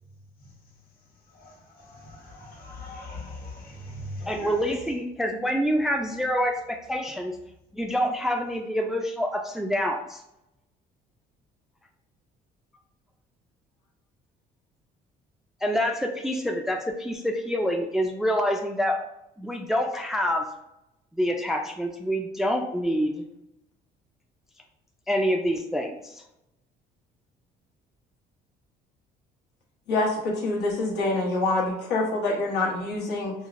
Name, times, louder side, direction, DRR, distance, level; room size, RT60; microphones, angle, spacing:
voice 1, 1.3-4.6, left 1 dB, 60° left, -2 dB, 1.2 m, -41 dB
voice 2, 4.3-7.4 7.7-10.2 15.6-19.0 19.4-20.4 21.1-23.2 25.1-26.2, equal, ahead, 3 dB, 0.3 m, -26 dB
voice 3, 29.9-33.3, left 2 dB, 80° left, -3 dB, 1.0 m, -26 dB
4.6 x 2.0 x 2.4 m, 0.84 s
cardioid pair, 110°, 17 cm